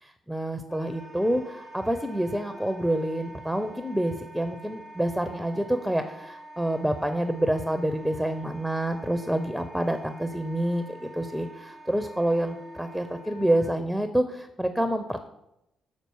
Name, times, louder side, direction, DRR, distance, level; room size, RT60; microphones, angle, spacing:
voice 1, 0.0-15.3, right 1 dB, ahead, 9 dB, 0.6 m, -28 dB
Wind instrument woodwind instrument, 0.7-13.7, right 1 dB, 45° left, 2.2 m, -46 dB
6.7 x 4.2 x 4.6 m, 0.84 s
figure-of-eight pair, 40°, 0 cm